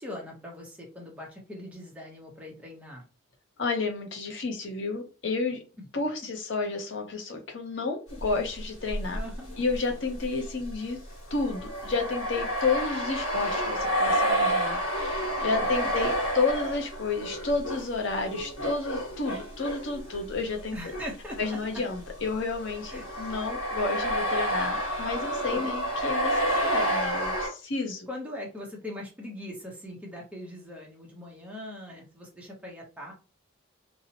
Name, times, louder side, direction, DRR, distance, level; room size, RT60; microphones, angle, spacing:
voice 1, 0.0-3.0 5.8-5.9 9.1-9.6 15.6-15.7 20.7-21.6 22.9-23.0 25.6-25.7 28.1-33.1, left 1 dB, 5° right, -2 dB, 0.7 m, -41 dB
voice 2, 3.6-5.6 5.9-9.2 9.6-11.0 11.3-20.8 21.4-28.1, left 3 dB, 60° left, 3 dB, 0.6 m, -31 dB
sound 1, 8.2-8.5 8.9-21.1 21.4-27.5, equal, 90° left, 1.2 m, -30 dB
2.7 x 2.0 x 2.7 m, 0.35 s
head